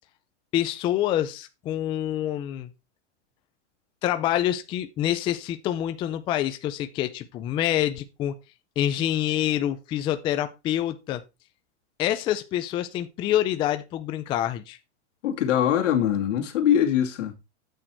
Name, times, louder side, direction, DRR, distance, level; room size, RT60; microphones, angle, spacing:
voice 1, 0.5-2.7 4.0-8.3 8.8-11.2 12.0-14.8, left 12 dB, 15° left, 0.4 m, -26 dB
voice 2, 15.2-17.3, left 9 dB, 80° left, 2.6 m, -22 dB
8.9 x 6.5 x 4.5 m
supercardioid pair, 160°, 36 cm